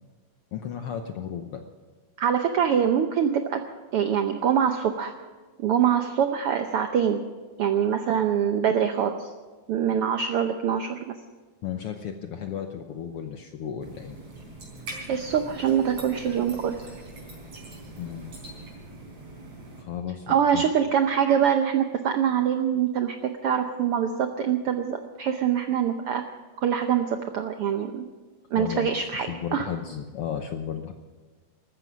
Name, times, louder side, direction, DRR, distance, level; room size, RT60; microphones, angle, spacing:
voice 1, 0.5-1.6 11.6-14.2 18.0-18.3 19.8-20.6 28.6-30.9, left 8 dB, 70° left, 6 dB, 1.4 m, -34 dB
voice 2, 2.2-3.6 3.9-5.1 5.6-7.2 7.6-9.3 9.7-11.1 15.1-16.7 20.3-26.2 26.6-28.0 28.5-29.7, right 8 dB, 75° right, 6 dB, 1.3 m, -24 dB
sound 1, 13.8-19.8, right 2 dB, 55° right, 5.6 m, -42 dB
14.5 x 14.0 x 6.2 m, 1.4 s
omnidirectional pair, 3.5 m